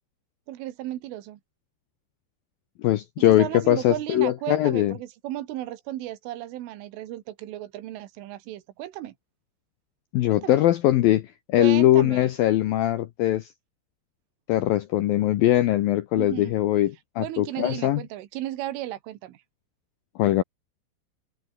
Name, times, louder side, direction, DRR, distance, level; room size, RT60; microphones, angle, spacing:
voice 1, 0.5-1.4 3.2-9.1 10.3-10.6 11.6-12.3 16.2-16.5 17.2-19.4, right 14 dB, 90° right, 4.2 m, -34 dB
voice 2, 2.8-4.9 10.1-13.5 14.5-18.0 20.2-20.4, left 14 dB, 80° left, 2.1 m, -21 dB
omnidirectional pair, 5.5 m